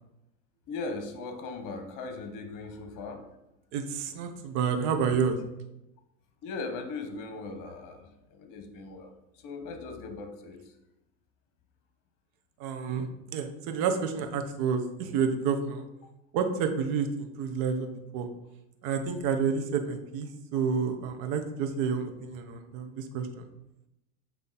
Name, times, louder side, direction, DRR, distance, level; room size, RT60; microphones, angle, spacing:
voice 1, 0.7-3.2 6.4-9.1 9.4-10.6, left 3 dB, 45° left, 6 dB, 1.2 m, -38 dB
voice 2, 3.7-5.4 12.6-15.8 16.3-18.3 18.8-23.5, right 6 dB, 55° right, 6 dB, 1.1 m, -29 dB
8.3 x 3.1 x 4.2 m, 0.90 s
hypercardioid pair, 105°, 43 cm